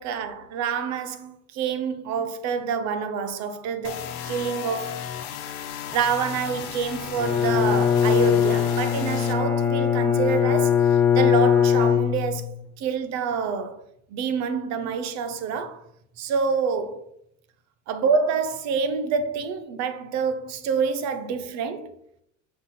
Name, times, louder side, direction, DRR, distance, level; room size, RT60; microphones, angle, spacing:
voice 1, 0.0-5.0 5.9-13.8 14.1-15.8 16.2-17.1 17.9-21.9, right 6 dB, 45° right, 0.8 m, -27 dB
sound 1, 3.8-9.3, left 8 dB, 75° left, 1.0 m, -35 dB
Bowed string instrument, 7.2-12.6, left 8 dB, 5° left, 0.3 m, -21 dB
6.5 x 4.1 x 4.2 m
supercardioid pair, 115°, 36 cm